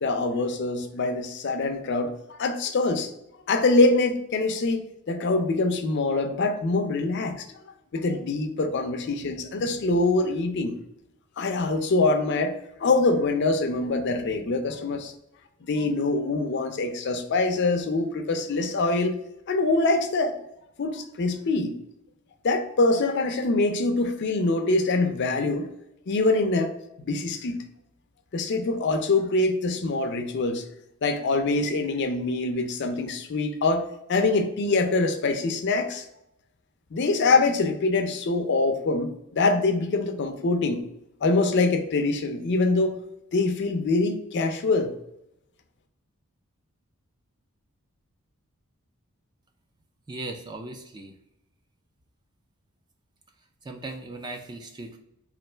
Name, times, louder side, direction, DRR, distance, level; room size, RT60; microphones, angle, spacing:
voice 1, 0.0-3.1 3.5-7.4 7.9-10.8 11.4-12.5 12.8-15.1 15.6-19.2 19.5-20.4 20.8-21.7 22.4-25.7 26.1-27.6 28.3-30.7 31.0-36.1 36.9-40.8 41.2-43.0 43.3-44.9, left 3 dB, 50° left, 7 dB, 0.4 m, -24 dB
voice 2, 50.1-51.2 53.6-55.0, right 2 dB, 20° right, 4 dB, 0.4 m, -38 dB
3.2 x 2.5 x 4.3 m, 0.84 s
head